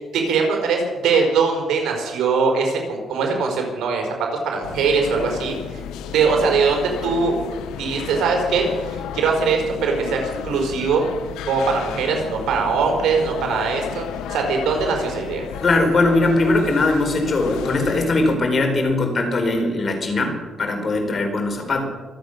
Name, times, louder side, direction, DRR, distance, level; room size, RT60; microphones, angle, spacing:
voice 1, 0.0-5.5 6.1-7.3 7.7-11.1 11.5-14.0 14.3-15.4, right 5 dB, 80° right, 2 dB, 4.5 m, -21 dB
sound 1, 4.6-18.4, left 9 dB, 90° left, 0.9 m, -33 dB
voice 2, 15.6-21.8, left 2 dB, 40° left, 4 dB, 4.5 m, -20 dB
25.0 x 8.7 x 6.6 m, 1.3 s
cardioid pair, 90°, 0 cm